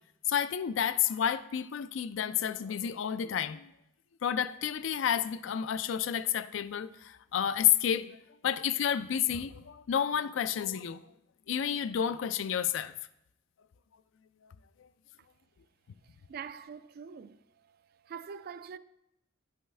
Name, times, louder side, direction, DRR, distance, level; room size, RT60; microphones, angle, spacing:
voice 1, 0.3-3.7 4.2-11.0 11.5-12.9, left 9 dB, 75° left, 0.4 m, -30 dB
voice 2, 16.3-17.8 18.0-18.8, right 6 dB, 50° right, 0.3 m, -44 dB
11.0 x 5.6 x 3.3 m
head